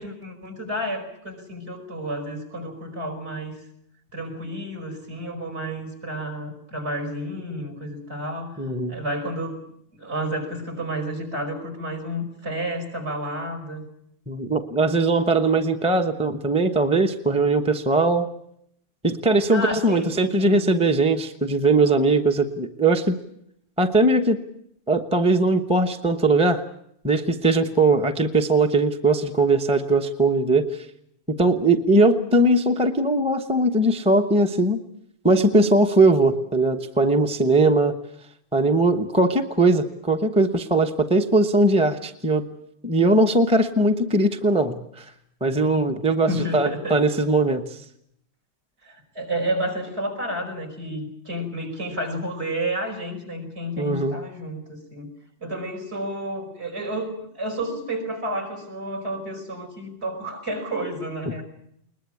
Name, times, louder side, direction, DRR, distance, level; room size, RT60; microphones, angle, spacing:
voice 1, 0.0-3.6 4.1-8.6 8.9-9.6 9.9-13.8 19.5-20.7 46.3-47.0 48.8-55.1 55.4-61.4, right 1 dB, 55° right, 6 dB, 5.7 m, -31 dB
voice 2, 8.6-9.0 14.3-18.3 19.0-23.1 23.8-24.4 24.9-26.6 27.0-30.8 31.3-34.8 35.2-38.0 38.5-42.4 42.8-45.0 45.4-47.8 53.8-54.2, right 2 dB, 5° right, 6 dB, 1.0 m, -20 dB
21.5 x 20.5 x 8.5 m, 0.73 s
omnidirectional pair, 1.3 m